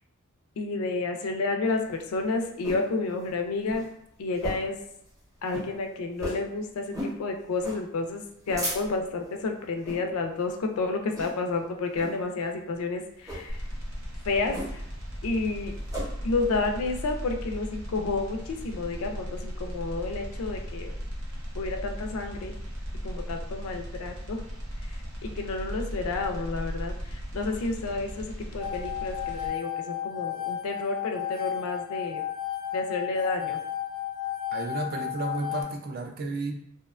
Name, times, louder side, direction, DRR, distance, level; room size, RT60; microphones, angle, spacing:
voice 1, 0.6-3.8 4.2-4.8 5.4-13.6 14.3-14.8 15.2-15.7 16.2-20.9 21.6-22.5 23.0-24.4 25.2-28.3 28.5-32.2 32.7-33.6, left 3 dB, 75° left, 4 dB, 0.4 m, -30 dB
sound 1, 1.7-2.9 3.3-3.4 3.6-3.9 4.3-4.8 5.1-5.2 5.5-5.7 6.2-6.5 6.9-7.2 7.6-7.8 8.2-9.1 9.7-10.0 10.5-10.7 11.1-11.5 11.9-12.2 13.2-13.5 14.5-15.0 15.3-16.1, equal, 15° right, 0.7 m, -35 dB
sound 2, 13.5-29.5, equal, 65° right, 0.8 m, -37 dB
sound 3, 28.6-35.6, left 12 dB, 20° left, 0.5 m, -33 dB
voice 2, 34.5-36.5, right 3 dB, 45° right, 3 dB, 0.4 m, -32 dB
2.7 x 2.1 x 2.3 m, 0.72 s
head